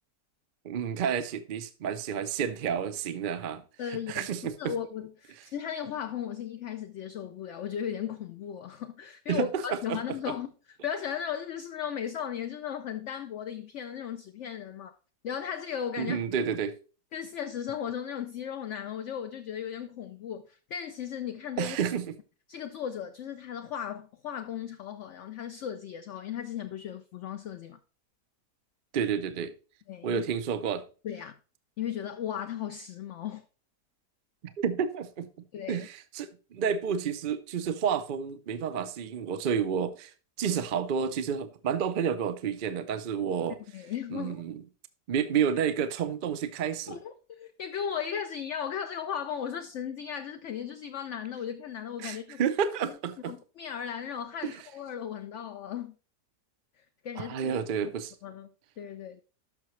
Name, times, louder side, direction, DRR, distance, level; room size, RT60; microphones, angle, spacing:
voice 1, 0.6-3.6 3.9-4.7 9.3-9.6 9.9-10.0 16.0-16.7 21.6-22.1 28.9-29.5 30.0-30.8 34.6-35.3 35.7-40.1 40.4-43.6 44.1-44.6 45.1-47.0 52.0-53.3 54.4-54.5 57.2-58.1, right 7 dB, 55° right, 0.5 m, -30 dB
voice 2, 3.8-4.3 4.6-15.0 15.2-16.2 17.1-21.8 22.5-27.8 29.9-30.2 31.0-31.4 31.8-33.4 35.5-35.9 40.4-40.6 43.7-44.4 46.9-52.4 52.8-52.9 53.3-55.9 56.8-57.5 58.2-59.2, left 8 dB, 65° left, 0.7 m, -36 dB
12.0 x 5.8 x 3.1 m
omnidirectional pair, 1.7 m